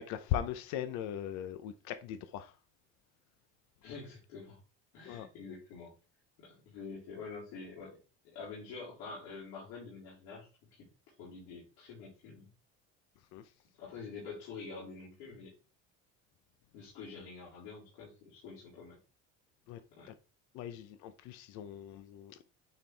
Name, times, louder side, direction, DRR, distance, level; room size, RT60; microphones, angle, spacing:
voice 1, 0.0-2.6 5.1-5.3 13.3-13.5 19.7-19.8 20.1-20.2 20.5-22.4, left 10 dB, 70° left, 0.7 m, -39 dB
voice 2, 3.8-4.6 4.9-5.9 6.4-8.0 8.2-10.9 11.2-12.5 13.8-15.5 16.7-19.0 19.9-20.1, left 4 dB, 90° left, 4.1 m, -47 dB
9.5 x 4.4 x 3.4 m
cardioid pair, 170°, 30 cm